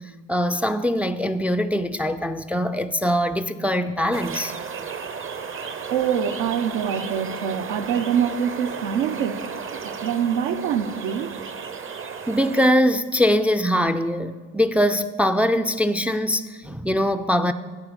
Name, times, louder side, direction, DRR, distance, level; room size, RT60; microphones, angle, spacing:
voice 1, 0.3-4.5 12.3-17.5, equal, 5° right, 0.4 m, -22 dB
sound 1, 4.1-12.7, right 6 dB, 30° right, 0.7 m, -34 dB
voice 2, 5.9-9.4 9.7-11.3, right 8 dB, 75° right, 1.0 m, -25 dB
9.8 x 7.2 x 6.6 m
supercardioid pair, 75°, 42 cm